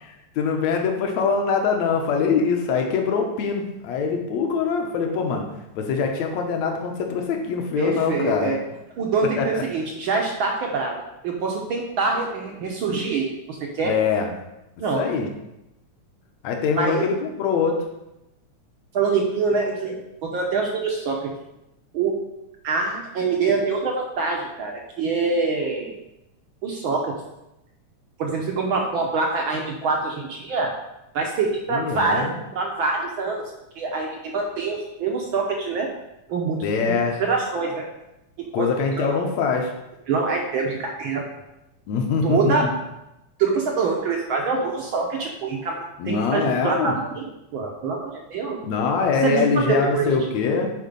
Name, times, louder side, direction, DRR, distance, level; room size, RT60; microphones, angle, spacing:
voice 1, 0.4-5.5 5.8-8.5 9.4-9.6 13.8-14.3 15.0-15.3 16.4-17.8 31.7-32.4 36.6-37.2 38.5-39.7 41.9-42.7 46.0-46.9 48.6-50.7, left 5 dB, 70° left, 3 dB, 2.2 m, -23 dB
voice 2, 7.8-8.6 9.0-11.0 11.2-13.9 14.8-15.0 16.8-17.1 18.9-21.3 21.9-22.1 22.6-25.9 26.6-27.1 28.2-30.7 31.1-33.4 33.8-35.9 36.3-37.9 38.5-38.7 39.0-39.2 40.1-41.3 42.2-42.7 43.4-45.7 46.0-47.2 47.5-48.6 49.2-50.1, right 4 dB, 70° right, 0 dB, 1.2 m, -25 dB
9.4 x 4.2 x 5.3 m, 0.91 s
omnidirectional pair, 3.3 m